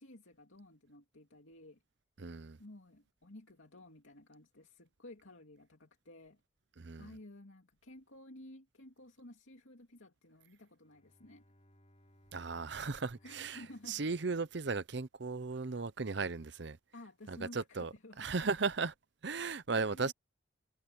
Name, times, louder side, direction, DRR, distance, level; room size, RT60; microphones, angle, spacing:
voice 1, 0.0-1.8 2.6-6.4 7.0-11.5 13.2-14.0 16.9-18.3 19.8-20.1, left 1 dB, 80° left, 2.5 m, -54 dB
voice 2, 2.2-2.6 6.8-7.1 12.3-16.8 17.3-18.9 19.2-20.1, right 4 dB, 55° right, 0.7 m, -36 dB
Bowed string instrument, 10.8-15.1, equal, 35° left, 5.3 m, -67 dB
head